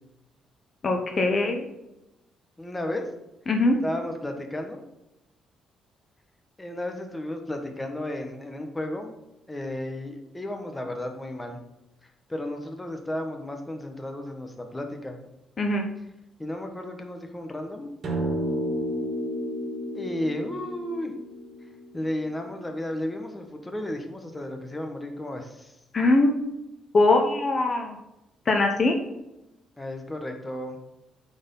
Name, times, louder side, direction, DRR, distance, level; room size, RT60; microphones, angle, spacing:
voice 1, 0.8-1.7 3.5-3.8 15.6-15.8 25.9-26.4 26.9-28.0 28.5-29.0, left 2 dB, 40° left, 3 dB, 1.1 m, -21 dB
voice 2, 2.6-3.1 3.8-4.8 6.6-9.2 9.5-11.6 12.3-15.2 16.4-17.9 19.9-21.1 21.9-25.7 29.8-30.8, left 1 dB, 15° left, 4 dB, 1.3 m, -33 dB
sound 1, 18.0-22.6, equal, 50° right, 2.0 m, -31 dB
8.4 x 4.5 x 5.5 m, 0.92 s
cardioid pair, 90°, 0 cm